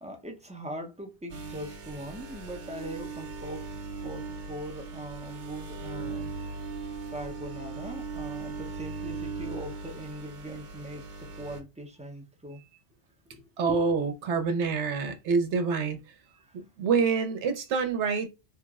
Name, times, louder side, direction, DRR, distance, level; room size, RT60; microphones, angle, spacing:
voice 1, 0.0-3.7 4.0-6.3 7.1-12.6 13.3-13.9 16.4-16.5, right 1 dB, 10° right, 0.3 m, -41 dB
sound 1, 1.3-11.6, right 4 dB, 55° right, 0.6 m, -39 dB
voice 2, 13.6-16.0 16.5-18.3, right 5 dB, 85° right, 1.0 m, -27 dB
3.1 x 2.0 x 3.5 m
omnidirectional pair, 1.1 m